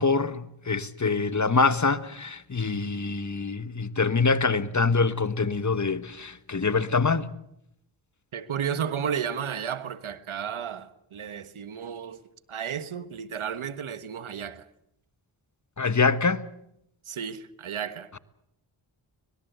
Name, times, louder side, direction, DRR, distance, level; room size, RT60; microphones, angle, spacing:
voice 1, 0.0-7.3 15.8-16.5, left 4 dB, 35° left, 1.4 m, -25 dB
voice 2, 8.3-12.2 12.5-14.7 17.1-18.2, right 8 dB, 75° right, 1.4 m, -33 dB
25.0 x 19.5 x 8.0 m
cardioid pair, 45°, 49 cm